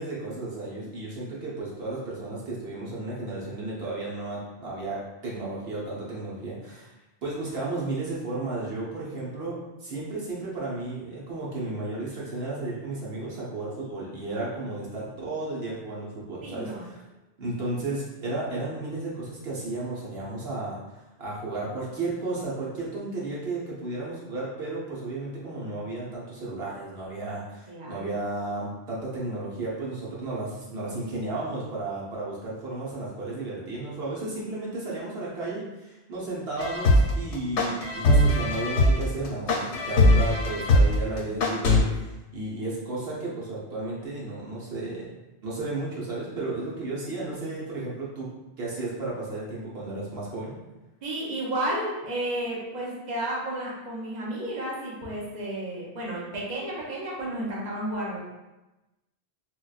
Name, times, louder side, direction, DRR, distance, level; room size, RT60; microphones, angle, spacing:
voice 1, 0.0-6.9 7.2-17.0 17.4-20.8 21.2-45.0 45.4-48.3 48.6-50.6, right 2 dB, 70° right, -6 dB, 1.0 m, -33 dB
voice 2, 16.4-16.8 27.7-28.0 51.0-58.2, right 1 dB, 45° right, -5 dB, 0.8 m, -32 dB
sound 1, 36.6-41.8, left 1 dB, 85° left, 0.9 m, -20 dB
4.4 x 2.2 x 2.3 m, 1.0 s
omnidirectional pair, 1.1 m